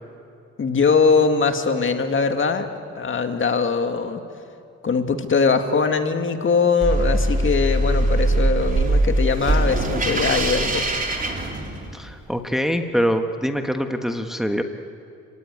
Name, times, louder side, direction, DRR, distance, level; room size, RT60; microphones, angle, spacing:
voice 1, 0.6-2.7 3.0-4.2 4.8-10.9, left 5 dB, 40° left, 6 dB, 2.1 m, -21 dB
sound 1, 6.8-12.1, right 1 dB, 30° right, 3.7 m, -21 dB
voice 2, 11.9-14.6, equal, ahead, 5 dB, 1.4 m, -24 dB
29.5 x 17.5 x 9.6 m, 2.5 s
cardioid pair, 90°, 30 cm